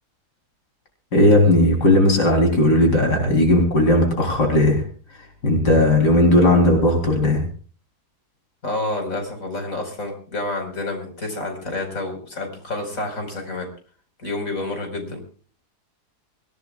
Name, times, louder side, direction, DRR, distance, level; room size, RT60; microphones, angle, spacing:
voice 1, 1.1-4.8 5.4-7.4, left 1 dB, 85° left, 2 dB, 4.4 m, -16 dB
voice 2, 8.6-13.7 14.2-15.2, left 2 dB, 55° left, 4 dB, 5.3 m, -29 dB
25.5 x 17.0 x 2.4 m, 0.41 s
omnidirectional pair, 1.7 m